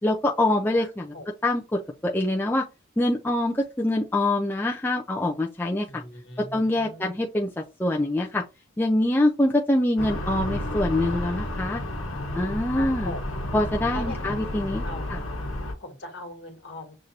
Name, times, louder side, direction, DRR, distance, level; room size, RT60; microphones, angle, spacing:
voice 1, 0.0-1.1 1.4-2.6 3.0-6.0 6.5-7.5 7.8-8.4 8.8-11.8 12.3-13.1 13.5-14.8 15.1-15.2, left 1 dB, 10° left, 0.3 m, -24 dB
voice 2, 0.7-1.3 5.9-7.1 12.7-13.3 13.9-15.2 15.8-17.0, left 1 dB, 60° left, 1.4 m, -40 dB
sound 1, 10.0-15.7, left 1 dB, 90° left, 1.0 m, -31 dB
6.5 x 2.5 x 2.8 m
head